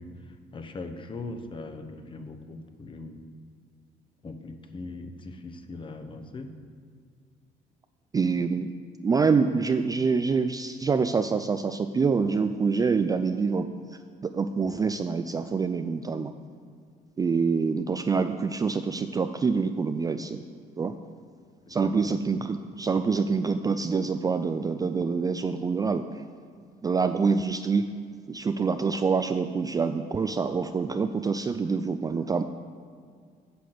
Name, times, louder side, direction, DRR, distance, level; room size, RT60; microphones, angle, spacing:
voice 1, 0.0-3.2 4.2-6.5 21.7-22.2, left 3 dB, 30° left, 7 dB, 1.0 m, -40 dB
voice 2, 8.1-8.7 9.0-13.7 14.2-16.3 17.2-20.4 20.8-20.9 21.7-26.0 26.8-27.9 28.3-32.4, right 5 dB, 20° right, 8 dB, 0.3 m, -26 dB
8.4 x 6.0 x 7.8 m, 2.1 s
cardioid pair, 110°, 17 cm